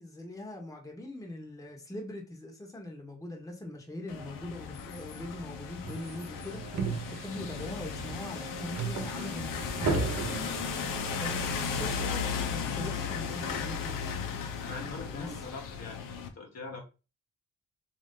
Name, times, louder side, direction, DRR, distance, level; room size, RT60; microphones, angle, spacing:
voice 1, 0.0-6.6 7.1-10.3 11.2-11.4 11.7-14.0 14.8-15.3, left 1 dB, 10° left, 0 dB, 1.1 m, -42 dB
sound 1, 4.1-16.3, left 6 dB, 90° left, 0.7 m, -36 dB
sound 2, 5.8-10.9, right 4 dB, 55° right, 1.0 m, -35 dB
voice 2, 11.2-12.0 14.6-16.8, left 4 dB, 55° left, 1 dB, 1.1 m, -43 dB
3.1 x 2.6 x 3.7 m, 0.32 s
cardioid pair, 90°, 32 cm